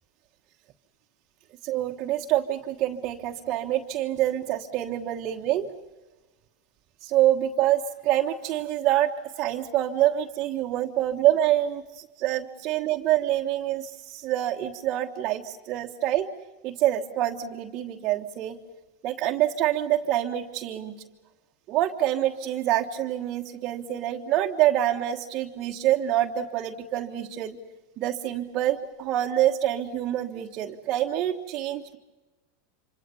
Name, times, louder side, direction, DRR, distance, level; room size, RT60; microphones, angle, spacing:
voice 1, 1.6-5.7 7.0-9.1 9.3-16.3 16.6-18.6 19.0-20.9 21.7-27.6 28.0-32.0, right 13 dB, 40° right, 0 dB, 1.4 m, -26 dB
26.5 x 25.5 x 7.0 m, 1.2 s
supercardioid pair, 135°, 0 cm